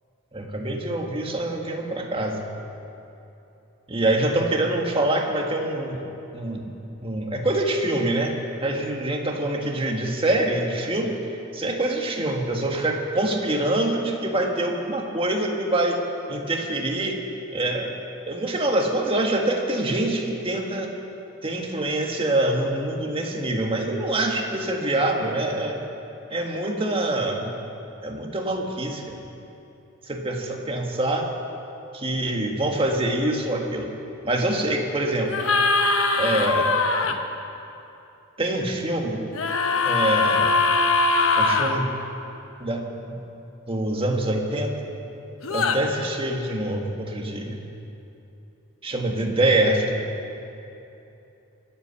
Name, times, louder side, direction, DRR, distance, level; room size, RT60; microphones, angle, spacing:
voice 1, 0.3-2.4 3.9-6.0 6.3-6.7 7.0-8.3 8.6-16.0 16.3-17.2 17.5-17.9 18.3-20.9 21.4-25.8 26.3-27.5 28.0-29.2 30.1-31.3 31.9-33.9 34.2-35.3 36.2-36.7 38.4-39.2 39.8-40.6 41.4-41.9 42.6-43.2 43.7-44.7 45.5-47.6 48.8-50.0, right 1 dB, 25° right, 1 dB, 1.7 m, -25 dB
sound 1, 35.3-37.1 39.3-41.7 45.4-45.8, left 3 dB, 70° left, 1.0 m, -21 dB
24.0 x 8.5 x 7.0 m, 2.9 s
head